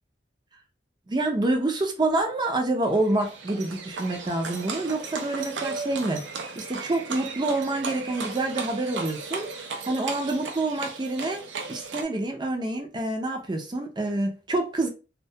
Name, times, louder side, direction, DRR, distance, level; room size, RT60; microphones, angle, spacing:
voice 1, 1.1-6.3 6.6-11.4 11.7-14.9, right 2 dB, 25° right, 0.5 m, -27 dB
Livestock farm animals working animals, 2.9-12.0, right 4 dB, 80° right, 0.5 m, -36 dB
2.2 x 2.2 x 2.7 m
head